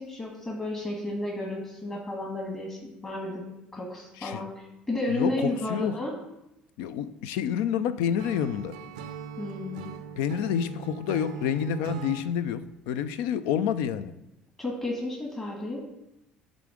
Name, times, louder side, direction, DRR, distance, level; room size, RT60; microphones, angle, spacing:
voice 1, 0.0-3.4 3.7-6.1 9.4-9.9 14.6-15.8, left 2 dB, 25° left, 1.6 m, -32 dB
voice 2, 5.1-6.0 6.8-8.8 10.2-14.1, left 8 dB, 70° left, 0.3 m, -28 dB
Acoustic guitar / Strum, 8.2-12.3, right 7 dB, 75° right, 0.5 m, -40 dB
6.8 x 3.8 x 5.0 m
hypercardioid pair, 60°, 4 cm